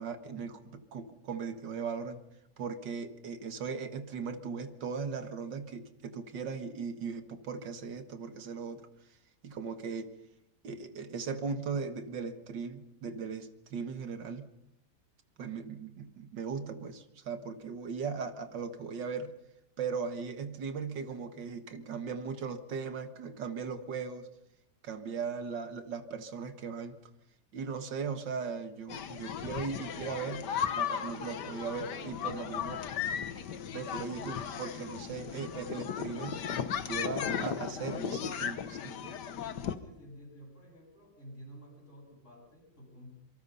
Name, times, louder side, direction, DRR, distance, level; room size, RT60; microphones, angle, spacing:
voice 1, 0.0-2.2 2.6-8.9 9.4-10.1 10.6-14.5 15.4-19.3 19.8-24.3 24.8-27.0 27.5-32.9 33.7-36.4 36.9-39.2, right 5 dB, 85° right, 9 dB, 2.2 m, -38 dB
sound 1, 28.9-39.7, left 8 dB, 70° left, 1.8 m, -36 dB
voice 2, 37.0-37.9 39.8-43.1, equal, 45° left, 0 dB, 8.2 m, -50 dB
26.0 x 24.5 x 5.6 m, 0.86 s
omnidirectional pair, 1.9 m